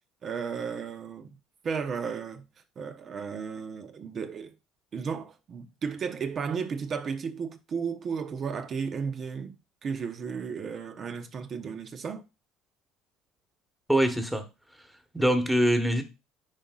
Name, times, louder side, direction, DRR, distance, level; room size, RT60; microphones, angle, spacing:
voice 1, 0.2-1.4 1.6-2.4 2.8-4.5 4.9-9.6 9.8-12.2 15.2-15.3, right 6 dB, 45° right, 0.9 m, -34 dB
voice 2, 13.9-14.4 15.1-16.0, equal, 5° right, 1.4 m, -23 dB
10.0 x 4.1 x 2.5 m
supercardioid pair, 100°, 0 cm